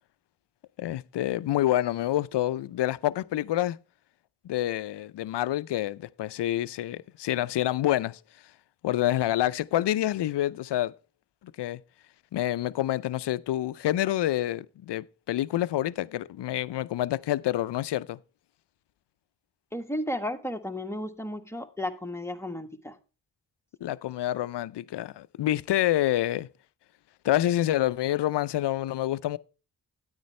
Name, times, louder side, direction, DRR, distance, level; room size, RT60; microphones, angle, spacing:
voice 1, 0.8-3.8 4.4-8.2 8.8-10.9 11.6-11.8 12.3-18.2 23.8-26.5 27.2-29.4, left 13 dB, 85° left, 0.5 m, -27 dB
voice 2, 19.7-23.0, left 1 dB, 5° left, 1.4 m, -33 dB
9.6 x 9.4 x 3.1 m
cardioid pair, 45°, 40 cm